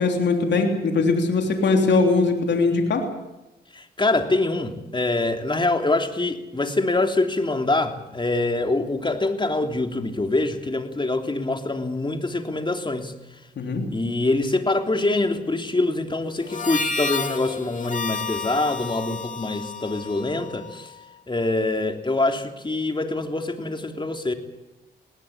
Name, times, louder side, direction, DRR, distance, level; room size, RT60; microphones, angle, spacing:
voice 1, 0.0-3.1 13.6-13.9, left 3 dB, 80° left, 4 dB, 3.4 m, -21 dB
voice 2, 3.7-13.1 13.9-20.9 21.3-24.3, left 2 dB, 25° left, 5 dB, 3.2 m, -24 dB
Harmonica, 16.4-21.0, left 4 dB, 45° left, 2.7 m, -31 dB
20.5 x 18.0 x 9.0 m, 0.96 s
cardioid pair, 60°, 18 cm